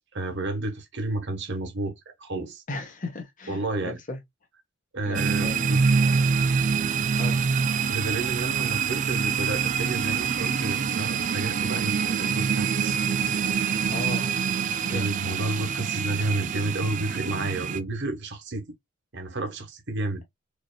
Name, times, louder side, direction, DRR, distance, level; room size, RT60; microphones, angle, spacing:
voice 1, 0.1-1.9 2.2-2.6 3.5-4.0 4.9-5.8 7.9-13.0 14.9-18.7 19.1-20.2, right 2 dB, 55° right, 1.3 m, -31 dB
voice 2, 2.7-4.2 5.0-5.7 7.2-7.4 13.9-14.3 14.9-15.1, left 2 dB, 40° left, 1.2 m, -35 dB
sound 1, 5.1-17.8, right 6 dB, 35° right, 0.3 m, -25 dB
4.9 x 2.9 x 2.3 m
head